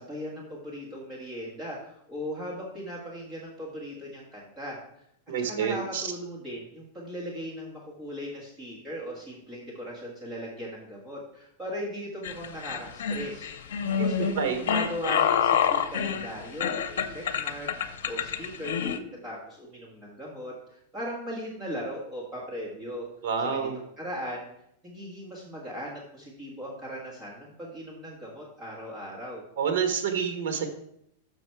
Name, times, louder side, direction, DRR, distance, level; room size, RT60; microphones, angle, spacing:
voice 1, 0.0-4.8 5.4-13.5 13.9-23.1 23.4-23.7 24.0-24.5 24.8-29.4, equal, 10° right, -6 dB, 1.6 m, -38 dB
voice 2, 5.3-6.1 14.0-14.6 23.2-23.8 29.6-30.7, right 6 dB, 60° right, 6 dB, 1.2 m, -28 dB
sound 1, 12.2-19.0, left 8 dB, 75° left, 0.7 m, -27 dB
6.8 x 6.1 x 4.5 m, 0.74 s
supercardioid pair, 175°, 0 cm